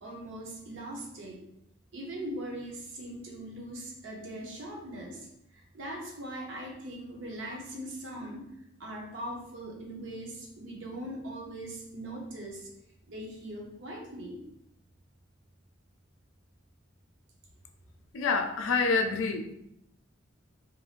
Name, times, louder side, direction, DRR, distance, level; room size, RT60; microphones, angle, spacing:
voice 1, 0.0-1.4 1.9-5.3 5.5-8.5 8.8-12.7 13.1-14.4, right 1 dB, 65° right, -1 dB, 0.7 m, -40 dB
voice 2, 18.1-19.5, left 4 dB, 80° left, 5 dB, 0.4 m, -27 dB
3.0 x 2.6 x 2.4 m, 0.81 s
head